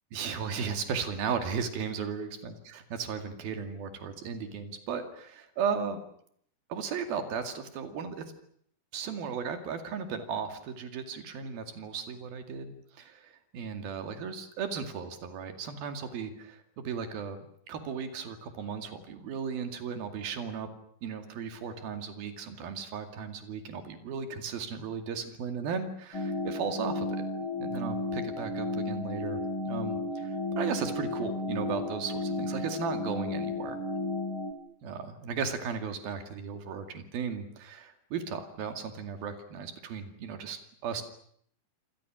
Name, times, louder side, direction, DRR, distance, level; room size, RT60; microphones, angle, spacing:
voice 1, 0.1-6.0 6.7-8.3 8.9-20.7 21.0-27.2 27.6-33.8 34.8-41.0, right 6 dB, 85° right, 7 dB, 4.2 m, -36 dB
sound 1, 26.1-34.5, left 2 dB, 40° left, 2.7 m, -33 dB
27.0 x 27.0 x 6.3 m, 0.66 s
omnidirectional pair, 4.1 m